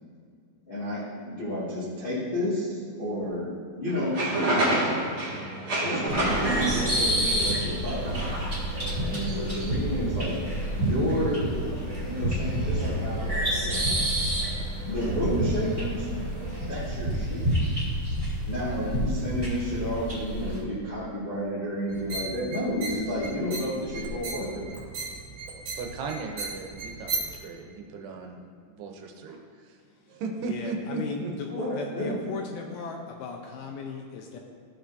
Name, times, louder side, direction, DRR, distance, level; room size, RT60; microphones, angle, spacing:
voice 1, 0.7-3.5 3.8-4.2 5.8-8.2 9.0-10.4 10.7-11.7 12.0-13.9 14.8-16.1 16.7-17.5 18.5-24.7 31.5-32.2, equal, 50° left, -10 dB, 0.6 m, -31 dB
sound 1, 3.9-16.7, right 1 dB, 35° right, 1.9 m, -32 dB
sound 2, 6.1-20.6, right 1 dB, 20° right, 0.9 m, -29 dB
voice 2, 18.5-18.9 25.8-28.4 28.7-29.8 30.1-31.3, right 3 dB, 80° right, 2 dB, 2.8 m, -36 dB
sound 3, 21.9-27.4, right 3 dB, 55° right, 2.7 m, -36 dB
voice 3, 30.5-34.4, left 4 dB, 80° left, 2 dB, 2.4 m, -37 dB
15.0 x 5.9 x 2.7 m, 2.3 s
omnidirectional pair, 4.8 m